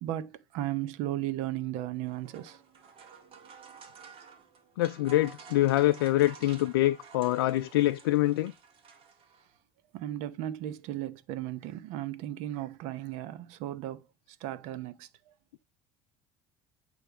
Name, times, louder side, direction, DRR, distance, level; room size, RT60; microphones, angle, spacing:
voice 1, 0.0-2.6 9.9-14.0 14.4-15.1, right 13 dB, 70° right, 0.8 m, -35 dB
sound 1, 1.9-9.6, right 6 dB, 50° right, 1.8 m, -52 dB
voice 2, 4.8-8.5, left 15 dB, 85° left, 0.4 m, -25 dB
8.8 x 3.3 x 4.9 m
hypercardioid pair, 75°, 12 cm